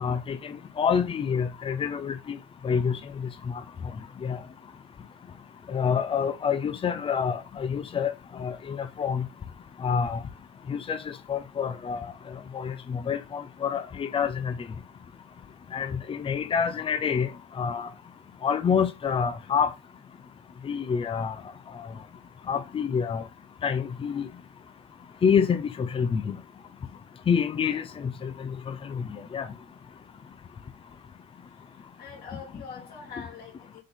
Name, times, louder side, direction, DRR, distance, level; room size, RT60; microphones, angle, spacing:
voice 1, 0.0-2.4 2.6-3.0 4.2-4.4 5.7-8.1 8.4-9.2 9.8-10.2 10.7-11.0 11.3-12.1 12.5-14.6 15.7-17.3 17.6-17.9 18.4-19.7 20.6-21.3 22.5-23.2 23.6-24.3 25.2-26.4 27.3-28.3 28.7-29.0 29.3-29.5, left 7 dB, 30° left, 0.8 m, -27 dB
voice 2, 27.6-28.1 31.5-33.8, left 6 dB, 60° left, 3.3 m, -45 dB
6.4 x 4.0 x 3.9 m
cardioid pair, 110°, 17 cm